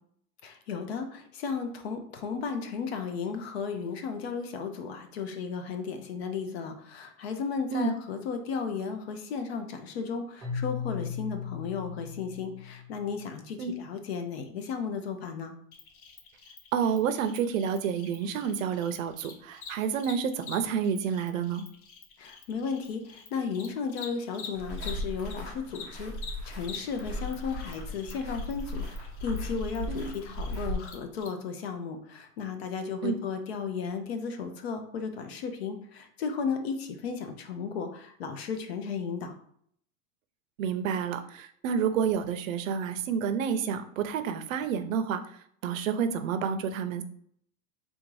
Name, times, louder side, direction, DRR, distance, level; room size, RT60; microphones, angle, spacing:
voice 1, 0.4-15.5 22.2-26.1 26.4-39.3, left 5 dB, 50° left, 7 dB, 0.6 m, -34 dB
Keyboard (musical), 10.4-13.4, left 7 dB, 10° right, 0.6 m, -37 dB
Cricket, 15.7-25.3 25.6-31.3, left 6 dB, 85° left, 1.2 m, -47 dB
voice 2, 16.7-21.6 29.9-30.1 33.0-33.2 40.6-45.2 45.6-47.0, right 7 dB, 70° right, 10 dB, 0.6 m, -29 dB
sound 1, 24.5-30.7, left 1 dB, 15° left, 0.8 m, -37 dB
3.6 x 2.7 x 4.6 m, 0.66 s
supercardioid pair, 180°, 42 cm